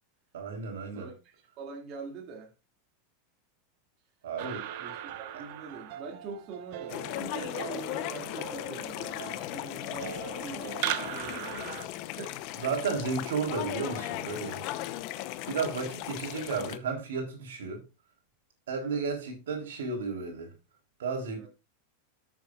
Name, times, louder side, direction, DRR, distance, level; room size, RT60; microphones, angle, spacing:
voice 1, 0.3-1.1 4.2-4.7 12.6-14.6 15.4-17.8 18.7-20.5 21.0-21.5, right 5 dB, 85° right, 3.5 m, -33 dB
voice 2, 0.9-2.5 4.8-12.4 18.8-19.1 21.4-21.5, right 5 dB, 45° right, 2.3 m, -44 dB
sound 1, 4.4-11.8, right 11 dB, 60° right, 1.1 m, -39 dB
sound 2, 6.9-16.8, left 15 dB, 55° left, 0.7 m, -37 dB
13.0 x 7.4 x 2.4 m
supercardioid pair, 125°, 0 cm